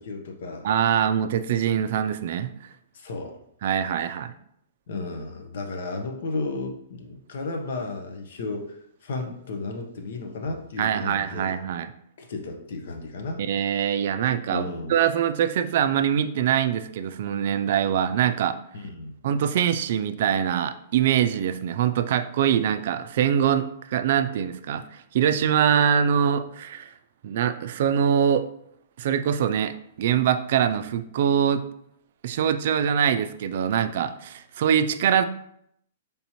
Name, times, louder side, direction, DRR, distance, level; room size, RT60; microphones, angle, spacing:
voice 1, 0.0-0.7 2.9-3.4 4.9-8.8 9.0-11.5 12.2-13.4 14.5-14.9 18.7-19.1, left 3 dB, 65° left, 4 dB, 0.8 m, -33 dB
voice 2, 0.6-2.5 3.6-4.3 10.8-11.9 13.4-18.6 19.2-26.9 27.2-28.5 29.0-31.6 32.2-35.2, right 9 dB, 55° right, 11 dB, 0.3 m, -23 dB
4.2 x 3.4 x 2.9 m, 0.72 s
hypercardioid pair, 155°, 0 cm